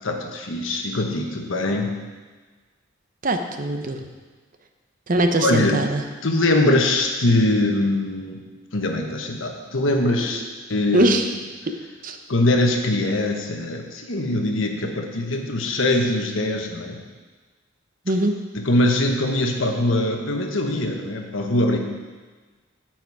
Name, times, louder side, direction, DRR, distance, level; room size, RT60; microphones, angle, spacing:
voice 1, 0.0-1.9 5.4-5.8 6.2-8.4 8.7-10.4 10.7-11.1 12.3-17.0 18.5-21.8, left 1 dB, 75° left, 3 dB, 1.2 m, -22 dB
voice 2, 3.2-4.0 5.1-6.0 10.9-11.3 12.0-12.2 18.1-18.3, right 1 dB, 40° right, 6 dB, 0.7 m, -21 dB
9.1 x 7.5 x 4.8 m, 1.4 s
head